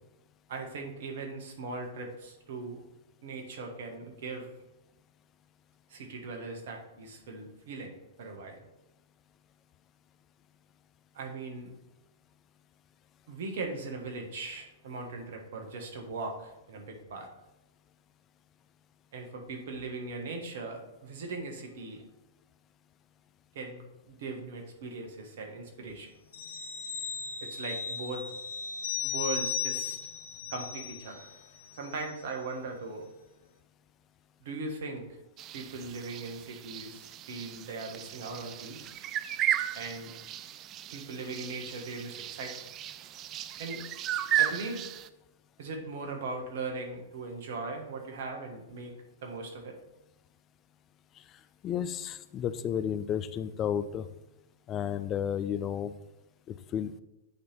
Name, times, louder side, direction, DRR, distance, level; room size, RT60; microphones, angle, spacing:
voice 1, 0.5-2.8 3.2-4.5 5.9-7.9 8.2-8.6 11.1-11.7 13.3-17.3 19.1-22.0 23.5-26.1 27.4-28.2 29.0-30.0 30.5-31.3 31.7-33.1 34.4-35.0 35.5-38.9 39.7-40.1 40.9-42.5 43.6-43.8 44.4-44.9 45.6-48.9 49.2-49.7, right 3 dB, 60° right, 3 dB, 1.5 m, -39 dB
sound 1, 26.3-31.4 31.8-31.9, left 7 dB, 70° left, 1.0 m, -36 dB
sound 2, 35.4-45.1, right 11 dB, 35° right, 0.3 m, -35 dB
voice 2, 51.6-54.1 54.7-55.9 56.5-57.0, left 9 dB, 30° left, 13 dB, 0.4 m, -32 dB
8.5 x 3.4 x 4.4 m, 0.94 s
hypercardioid pair, 105°, 0 cm